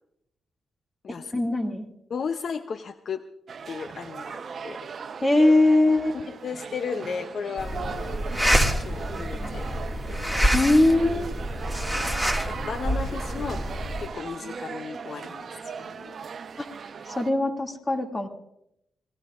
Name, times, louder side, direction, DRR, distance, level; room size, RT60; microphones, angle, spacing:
voice 1, 1.3-1.8 5.2-6.2 10.5-11.3 16.6-16.7 17.1-18.3, left 2 dB, 25° left, 3 dB, 2.3 m, -21 dB
voice 2, 2.1-3.3 3.7-4.9 6.1-8.2 8.5-9.7 12.5-13.6 14.0-16.2, left 6 dB, 65° left, 10 dB, 0.6 m, -35 dB
sound 1, 3.5-17.3, right 6 dB, 60° right, 0.9 m, -38 dB
sound 2, 7.6-14.1, equal, 10° left, 2.1 m, -27 dB
25.0 x 18.5 x 2.5 m, 0.80 s
cardioid pair, 65°, 0 cm